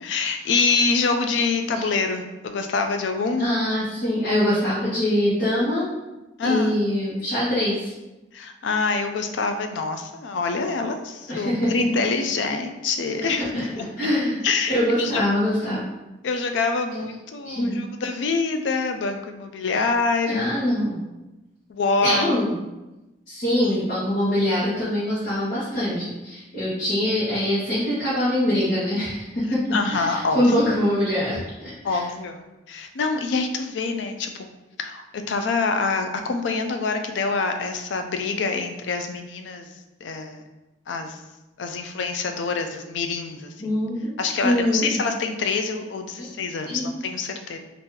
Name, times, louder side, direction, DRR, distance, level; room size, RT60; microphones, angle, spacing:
voice 1, 0.0-3.5 6.4-6.7 8.3-13.9 14.4-15.2 16.2-20.5 21.7-22.3 29.7-30.5 31.8-34.5 34.8-39.7 40.0-40.4 40.9-41.2 41.6-43.8 44.2-47.6, left 4 dB, 75° left, 6 dB, 0.4 m, -26 dB
voice 2, 3.4-5.8 6.4-7.9 11.3-11.7 13.4-14.4 14.7-15.8 17.4-17.8 19.7-19.8 20.3-21.0 22.0-22.6 23.3-29.6 29.9-32.0 43.6-44.1 44.4-45.0 46.2-46.3 46.6-46.9, left 1 dB, 50° left, -11 dB, 1.1 m, -24 dB
2.8 x 2.5 x 3.6 m, 1.0 s
head